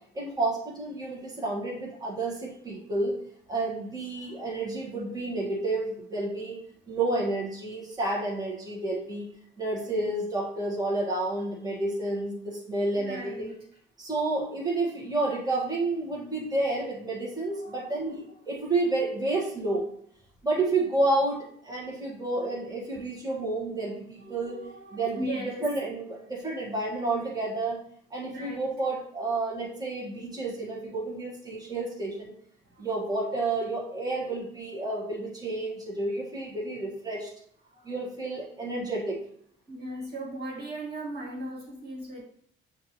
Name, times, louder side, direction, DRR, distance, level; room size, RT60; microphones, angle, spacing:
voice 1, 0.1-3.1 3.5-6.6 6.9-9.3 9.6-13.5 14.0-19.8 20.4-24.6 24.9-27.8 28.1-32.3 32.8-37.3 37.8-39.2, right 2 dB, 20° right, -4 dB, 1.3 m, -30 dB
voice 2, 4.2-4.5 12.9-13.8 17.5-18.2 19.4-19.6 24.2-25.7 28.2-28.7 32.6-32.9 37.6-37.9 39.7-42.2, right 1 dB, 55° right, -3 dB, 1.7 m, -39 dB
6.4 x 2.6 x 2.9 m, 0.63 s
cardioid pair, 90°, 20 cm